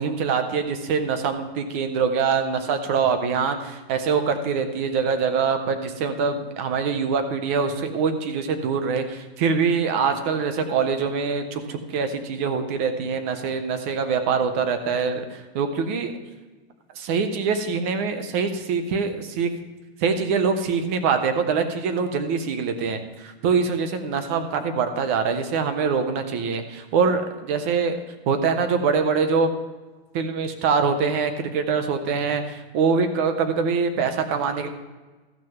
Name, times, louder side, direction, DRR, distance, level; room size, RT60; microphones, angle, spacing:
voice 1, 0.0-16.1 17.0-19.5 20.0-28.0 28.3-29.5 30.1-34.7, right 5 dB, 15° right, 8 dB, 0.3 m, -24 dB
14.0 x 6.2 x 5.7 m, 1.2 s
supercardioid pair, 175°, 31 cm